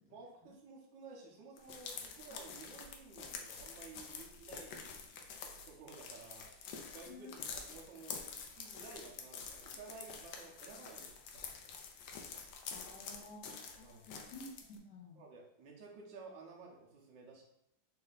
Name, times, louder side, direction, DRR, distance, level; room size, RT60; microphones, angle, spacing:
voice 1, 0.1-11.7 13.8-14.1 15.1-17.4, right 4 dB, 75° right, -2 dB, 1.5 m, -54 dB
sound 1, 1.6-14.8, left 5 dB, 90° left, 1.3 m, -48 dB
voice 2, 7.1-7.4 12.7-15.2, left 2 dB, 70° left, -3 dB, 1.1 m, -53 dB
4.2 x 2.6 x 3.9 m, 0.82 s
omnidirectional pair, 2.0 m